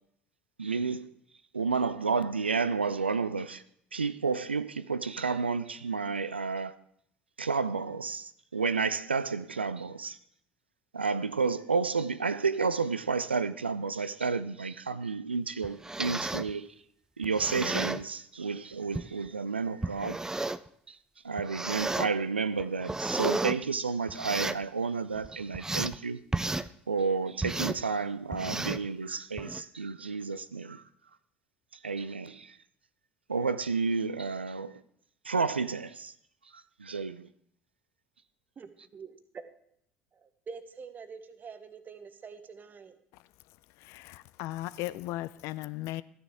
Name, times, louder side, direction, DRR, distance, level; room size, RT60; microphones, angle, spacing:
voice 1, 0.6-1.1 1.5-3.6 3.9-6.7 7.4-10.2 10.9-16.7 17.2-20.2 20.9-21.0 21.2-26.2 26.9-30.8 31.8-32.5 33.3-34.8 35.3-36.1 36.8-37.3, right 4 dB, 85° right, 0.3 m, -31 dB
sound 1, 15.6-16.5 17.2-18.0 18.9-19.1 19.8-20.7 21.4-22.1 22.6-23.6 24.1-24.6 25.2-26.0 26.3-26.7 27.4-27.8 28.3-28.9 29.4-29.6, right 2 dB, 10° right, 0.4 m, -32 dB
voice 2, 38.6-39.6 40.1-43.0, right 5 dB, 30° right, 1.1 m, -46 dB
voice 3, 43.8-46.0, left 16 dB, 55° left, 0.4 m, -37 dB
13.5 x 9.7 x 3.6 m
figure-of-eight pair, 60°, 6 cm